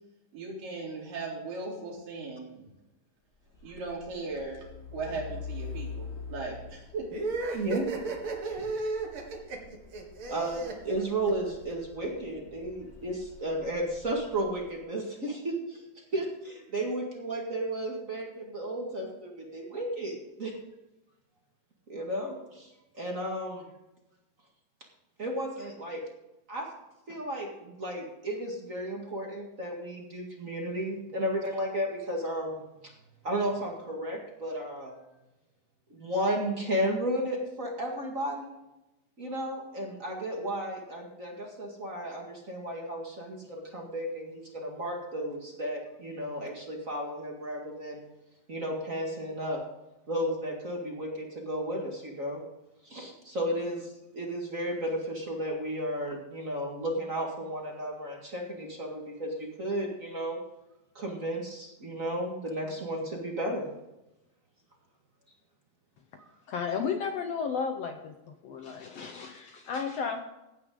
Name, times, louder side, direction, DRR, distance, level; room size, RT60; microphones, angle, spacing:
voice 1, 0.3-2.6 3.6-4.7 4.9-7.1 8.4-8.6, right 3 dB, 80° right, -3 dB, 5.5 m, -38 dB
Truck, 3.4-14.8, left 5 dB, 35° left, 1.9 m, -46 dB
sound 1, 7.1-11.7, right 3 dB, 45° right, 2.5 m, -34 dB
voice 2, 7.5-7.9 10.3-20.5 21.9-22.7 23.0-23.7 25.2-26.0 26.5-26.7 27.1-32.9 33.2-34.9 35.9-38.5 39.2-48.0 48.5-49.6 50.1-52.4 52.8-60.4 60.9-63.7, right 1 dB, 30° right, 0 dB, 1.8 m, -33 dB
voice 3, 66.5-68.1 68.4-70.2, left 6 dB, 70° left, 5 dB, 1.5 m, -33 dB
16.5 x 9.4 x 3.8 m, 0.96 s
omnidirectional pair, 3.9 m